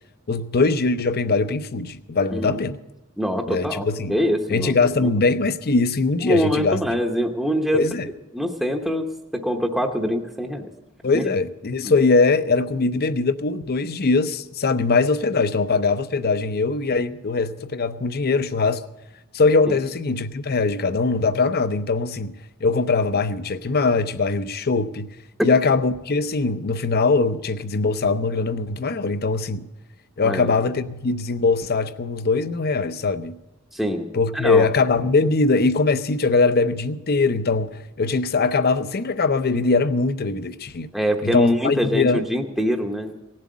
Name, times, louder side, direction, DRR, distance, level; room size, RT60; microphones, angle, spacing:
voice 1, 0.3-2.8 3.5-4.1 4.5-6.8 7.7-8.1 11.0-18.8 19.3-22.3 22.6-25.1 25.4-29.6 30.2-33.3 34.1-40.9 41.2-42.2, left 3 dB, 45° left, 0.6 m, -21 dB
voice 2, 2.3-2.6 3.2-5.1 6.3-7.8 8.3-9.1 9.3-10.7 11.1-11.2 11.8-11.9 19.7-19.8 30.2-30.5 33.7-34.1 34.3-34.6 40.9-43.1, equal, ahead, 0.8 m, -24 dB
17.5 x 7.6 x 8.4 m
head